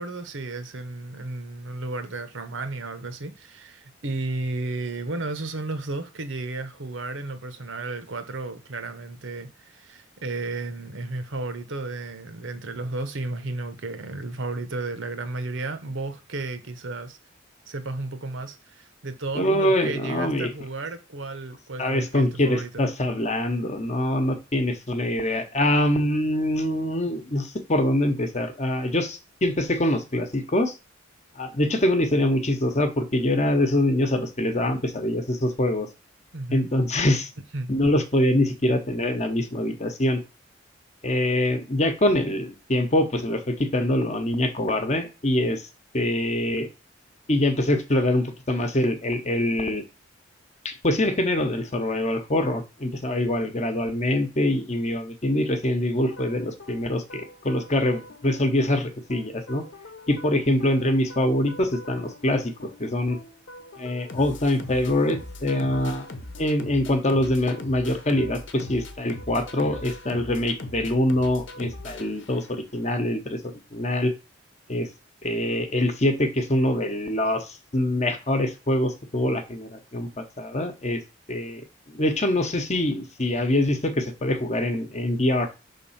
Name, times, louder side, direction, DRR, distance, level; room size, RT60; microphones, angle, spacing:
voice 1, 0.0-17.2 17.7-22.8 36.3-36.7 37.5-37.7, right 2 dB, 75° right, 1.0 m, -33 dB
voice 2, 19.3-20.5 21.8-30.7 31.4-35.9 36.5-37.3 37.7-40.2 41.0-45.7 45.9-46.7 47.3-49.8 50.6-59.6 60.1-63.2 63.8-66.1 66.4-74.1 74.7-74.9 75.2-81.0 81.3-81.6 81.9-85.5, left 1 dB, 35° left, 0.9 m, -24 dB
sound 1, 56.1-72.7, left 2 dB, 70° left, 1.0 m, -41 dB
5.5 x 3.6 x 5.7 m
head